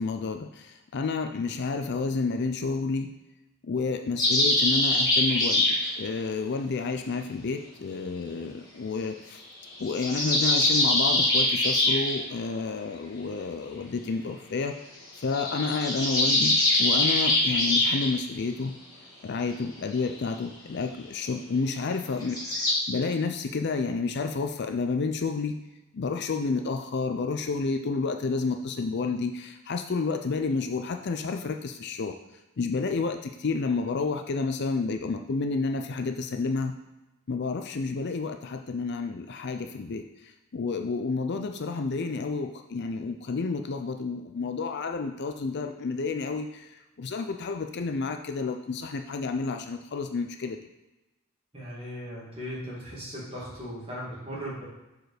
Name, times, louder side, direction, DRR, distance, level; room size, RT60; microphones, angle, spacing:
voice 1, 0.0-3.1 3.7-9.4 9.8-14.7 15.2-18.7 19.2-25.6 25.9-32.1 32.6-36.7 37.3-40.0 40.5-46.7 47.0-50.6, left 4 dB, 50° left, 5 dB, 0.4 m, -30 dB
sound 1, 4.2-5.9 9.7-12.2 15.3-18.1 22.2-22.7, left 1 dB, 15° left, 1.7 m, -23 dB
voice 2, 51.5-54.6, equal, 25° right, -6 dB, 2.3 m, -37 dB
6.1 x 4.7 x 4.9 m, 1.0 s
head